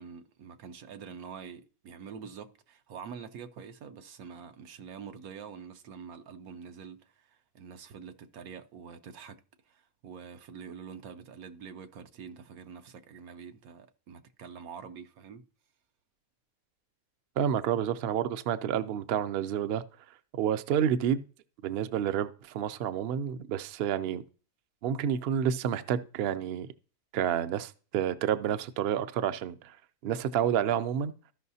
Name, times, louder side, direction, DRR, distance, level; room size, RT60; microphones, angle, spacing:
voice 1, 0.0-9.4 9.7-15.4, right 6 dB, 85° right, 1.2 m, -46 dB
voice 2, 17.4-19.8 20.3-21.2 21.6-24.2 24.8-26.7 27.1-29.8 30.0-31.1, right 9 dB, 65° right, 0.6 m, -29 dB
14.5 x 5.5 x 2.7 m
omnidirectional pair, 1.5 m